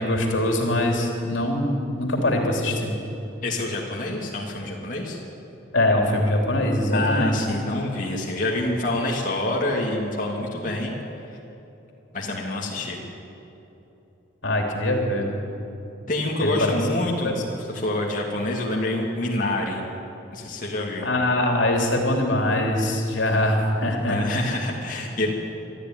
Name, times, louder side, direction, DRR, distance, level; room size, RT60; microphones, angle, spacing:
voice 1, 0.0-2.9 5.7-7.3 14.4-15.3 16.4-16.7 17.2-17.3 21.0-24.2, left 1 dB, 80° left, 1 dB, 3.2 m, -23 dB
voice 2, 3.4-5.2 6.9-11.0 12.1-13.0 16.1-17.4 17.7-19.8 20.3-21.1 24.1-25.3, left 1 dB, 45° left, -2 dB, 2.7 m, -26 dB
22.5 x 13.5 x 9.7 m, 3.0 s
head